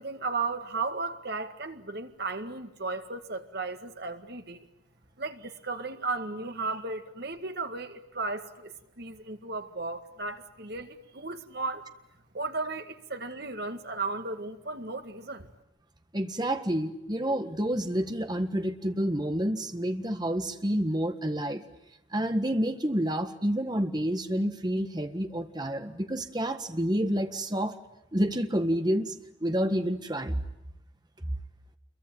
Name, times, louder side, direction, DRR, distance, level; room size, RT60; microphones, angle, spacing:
voice 1, 0.0-4.7 5.2-11.9 12.3-15.5, right 3 dB, 55° right, 2.0 m, -35 dB
voice 2, 16.1-21.6 22.1-27.8 28.1-29.1 29.4-30.4, equal, 20° right, 1.7 m, -29 dB
28.0 x 23.0 x 9.1 m
head